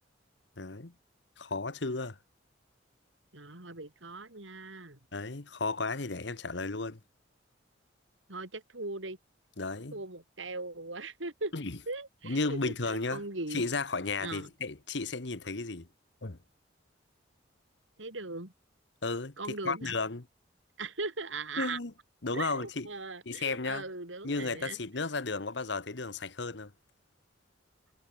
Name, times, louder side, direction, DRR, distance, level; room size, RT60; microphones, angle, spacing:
voice 1, 0.6-0.9 1.4-2.2 5.1-7.0 9.6-10.0 11.5-11.8 12.2-13.2 13.5-15.9 16.2-16.4 19.0-20.2 21.6-21.9 22.2-22.9 23.2-23.9 24.2-26.7, left 3 dB, 65° left, 1.3 m, -34 dB
voice 2, 3.3-5.0 8.3-9.2 9.9-11.5 11.9-13.6 14.2-14.5 18.0-18.5 19.4-20.0 20.8-21.8 22.3-24.8, right 3 dB, 80° right, 4.1 m, -39 dB
head